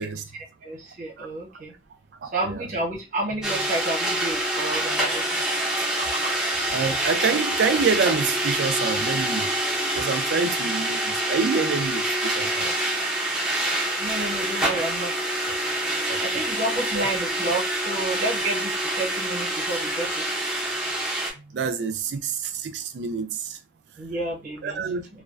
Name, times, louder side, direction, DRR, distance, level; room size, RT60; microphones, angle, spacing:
voice 1, 0.3-1.7 2.3-5.4 14.0-15.3 16.2-20.2 21.3-21.6 24.0-24.8, right 2 dB, 45° right, 0.8 m, -30 dB
voice 2, 2.2-2.7 6.7-9.5 9.9-12.7 15.5-15.6 16.1-16.4 16.9-17.1 21.5-23.6 24.6-25.1, right 5 dB, 70° right, 0.4 m, -27 dB
sound 1, 3.4-21.3, right 1 dB, 5° right, 0.6 m, -26 dB
2.3 x 2.2 x 2.4 m
head